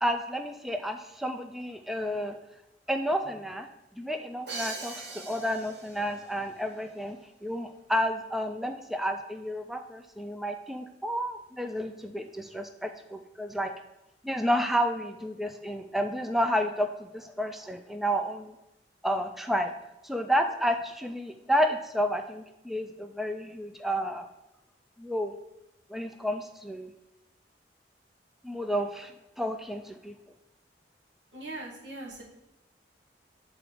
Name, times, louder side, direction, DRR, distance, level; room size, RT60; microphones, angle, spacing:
voice 1, 0.0-2.4 2.9-3.7 4.0-13.7 14.2-18.5 19.0-19.7 20.0-24.3 25.0-25.3 25.9-26.9 28.4-30.2, equal, ahead, 6 dB, 0.3 m, -31 dB
Crash cymbal, 4.5-6.3, right 3 dB, 65° right, 1.3 m, -40 dB
voice 2, 31.3-32.2, right 2 dB, 85° right, -3 dB, 1.9 m, -40 dB
7.5 x 3.9 x 4.8 m, 0.90 s
head